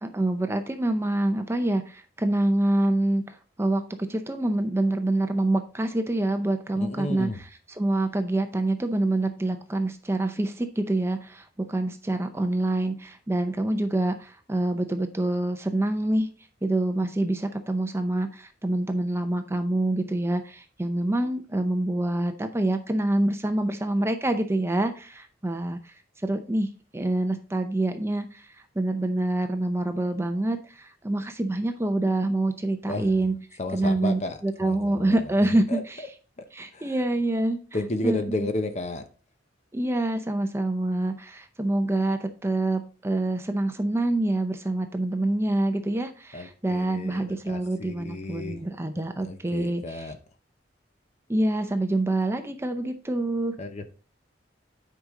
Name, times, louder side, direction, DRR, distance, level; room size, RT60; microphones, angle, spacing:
voice 1, 0.0-16.3 16.6-33.4 33.7-36.1 36.5-37.6 38.0-38.2 39.7-50.1 51.3-53.6, right 1 dB, 15° right, 0.5 m, -26 dB
voice 2, 6.8-7.4 32.9-33.1 33.6-35.1 35.7-35.8 36.7-36.9 37.7-39.0 46.3-48.6 49.2-50.2 53.6-53.9, left 2 dB, 35° left, 0.7 m, -32 dB
9.2 x 5.0 x 3.7 m
head